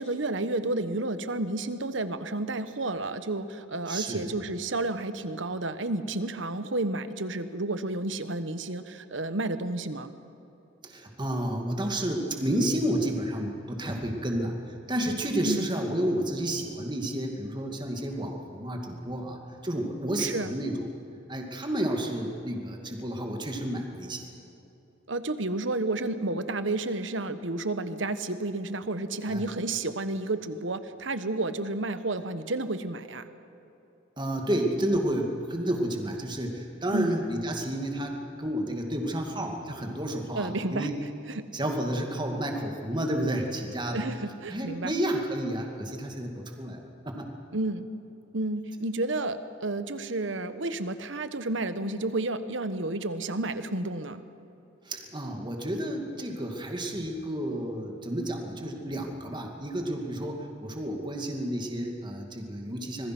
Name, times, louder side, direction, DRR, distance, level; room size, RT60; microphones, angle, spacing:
voice 1, 0.0-10.1 15.4-15.7 20.2-20.5 25.1-33.3 36.9-37.1 40.3-40.9 41.3-41.4 43.9-44.9 47.5-47.9 48.3-54.2, right 2 dB, 65° right, 11 dB, 1.2 m, -31 dB
voice 2, 3.9-4.3 10.8-14.6 14.9-20.9 21.3-24.2 29.3-29.4 34.2-41.0 41.5-44.0 44.5-47.3 54.9-63.1, right 1 dB, 25° right, 2 dB, 2.5 m, -31 dB
26.0 x 21.5 x 6.1 m, 2.9 s
head